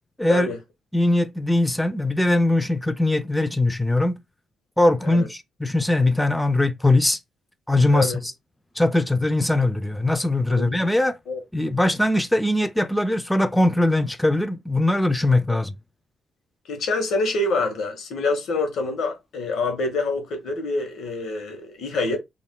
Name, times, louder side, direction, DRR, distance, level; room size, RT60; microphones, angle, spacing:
voice 1, 0.9-4.2 4.8-7.2 7.7-8.1 8.8-11.2 11.5-15.7, left 1 dB, 5° left, 0.3 m, -21 dB
voice 2, 16.7-22.2, left 3 dB, 70° left, 0.9 m, -26 dB
2.3 x 2.1 x 3.5 m
cardioid pair, 90°, 0 cm